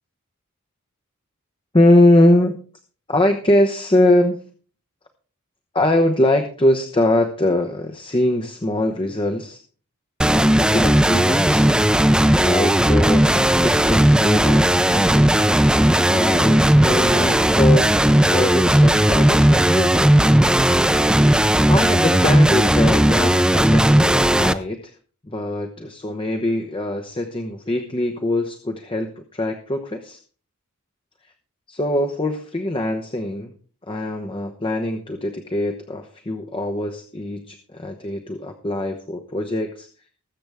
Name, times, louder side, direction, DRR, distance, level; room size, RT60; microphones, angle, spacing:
voice 1, 1.7-2.6 3.1-4.4 5.7-9.6 10.2-11.7 12.4-15.4 16.0-17.9 18.2-20.1 21.7-24.9 25.3-30.2 31.7-33.5 33.9-39.9, left 1 dB, 25° left, 4 dB, 0.9 m, -22 dB
sound 1, 10.2-24.5, right 1 dB, 5° right, 0.4 m, -16 dB
20.0 x 7.8 x 3.5 m, 0.40 s
head